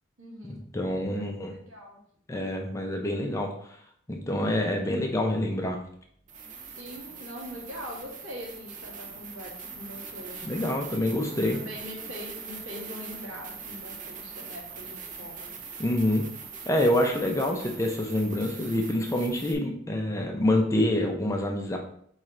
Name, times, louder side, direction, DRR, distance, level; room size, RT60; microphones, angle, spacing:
voice 1, 0.2-0.6 1.1-2.0 6.7-10.8 11.5-15.5, equal, 80° right, -3 dB, 1.6 m, -42 dB
voice 2, 0.7-1.5 2.3-3.8 4.1-5.8 10.4-11.6 15.8-16.2 16.7-21.8, left 1 dB, 15° left, 2 dB, 0.5 m, -26 dB
sound 1, 6.3-19.5, right 5 dB, 40° right, 0.6 m, -42 dB
4.5 x 3.1 x 3.7 m, 0.65 s
head